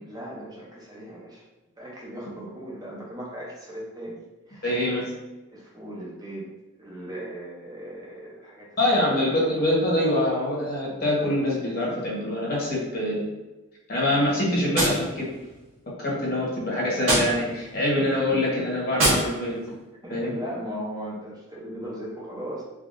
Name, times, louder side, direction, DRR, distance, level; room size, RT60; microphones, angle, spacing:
voice 1, 0.1-1.4 1.8-4.2 4.5-4.6 5.5-6.5 6.8-8.7 9.0-9.1 12.7-12.8 20.0-22.6, equal, 20° right, -5 dB, 0.5 m, -37 dB
voice 2, 4.6-5.1 8.8-13.3 13.9-15.3 16.0-19.6 20.1-20.4, left 1 dB, 45° left, -5 dB, 1.0 m, -24 dB
Gunshot gunfire, 14.7-15.8 17.0-17.8 18.9-19.8, right 1 dB, 60° right, 1.2 m, -26 dB
3.4 x 2.3 x 2.5 m, 1.1 s
head